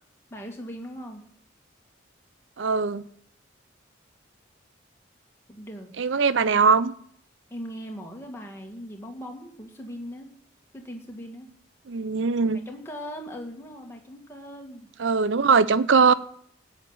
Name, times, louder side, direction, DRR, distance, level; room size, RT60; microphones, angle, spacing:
voice 1, 0.3-1.2 5.5-5.9 7.5-10.3 10.7-11.5 12.7-14.9, equal, 15° left, 2.1 m, -39 dB
voice 2, 2.6-3.1 6.0-6.9 11.9-12.6 15.0-16.1, right 5 dB, 75° right, 0.6 m, -21 dB
15.0 x 6.5 x 9.0 m
head